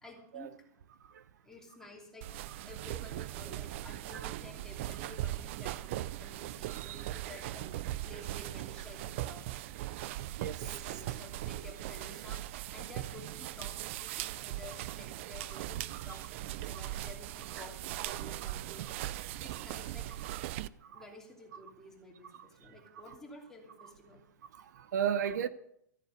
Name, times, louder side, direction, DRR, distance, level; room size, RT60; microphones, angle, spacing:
voice 1, 0.0-0.6 1.4-7.7 8.0-9.5 10.6-12.4 12.7-18.9 19.4-20.1 20.9-24.2 25.4-25.5, left 2 dB, 5° left, 2.9 m, -52 dB
sound 1, 2.2-20.7, right 14 dB, 45° right, 0.5 m, -39 dB
voice 2, 6.7-7.1 10.4-10.6 16.1-16.2 18.1-18.3 18.5-18.7 20.8-21.0 22.3-22.7 23.1-23.2 23.8-23.9 24.5-25.5, right 8 dB, 75° right, 0.9 m, -36 dB
14.0 x 9.1 x 8.0 m
supercardioid pair, 160°, 9 cm